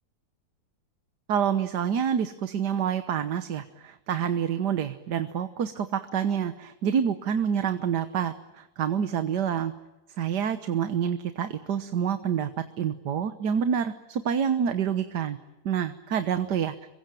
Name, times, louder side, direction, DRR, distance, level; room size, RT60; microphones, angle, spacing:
voice 1, 1.3-9.7 10.2-15.4 15.6-16.7, right 8 dB, 75° right, 10 dB, 1.7 m, -27 dB
26.5 x 23.0 x 9.1 m, 1.0 s
omnidirectional pair, 1.8 m